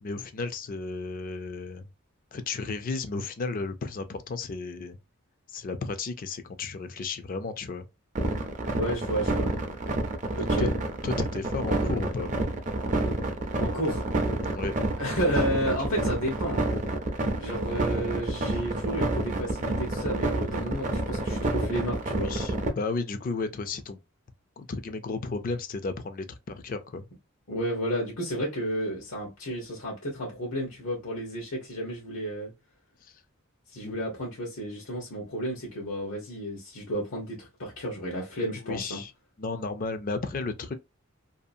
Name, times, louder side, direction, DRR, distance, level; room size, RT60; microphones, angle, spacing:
voice 1, 0.0-1.9 2.3-5.0 5.5-7.8 10.6-10.7 11.0-12.4 14.5-14.7 22.2-24.0 24.6-27.0 33.8-33.9 38.7-39.1 39.4-40.7, left 3 dB, 40° left, 0.4 m, -33 dB
sound 1, 8.2-22.7, right 2 dB, 35° right, 0.5 m, -28 dB
voice 2, 8.7-9.5 10.3-10.7 13.6-14.0 15.0-16.7 17.4-22.3 27.5-32.5 33.7-39.0, equal, 80° left, 0.9 m, -32 dB
2.7 x 2.3 x 2.5 m
head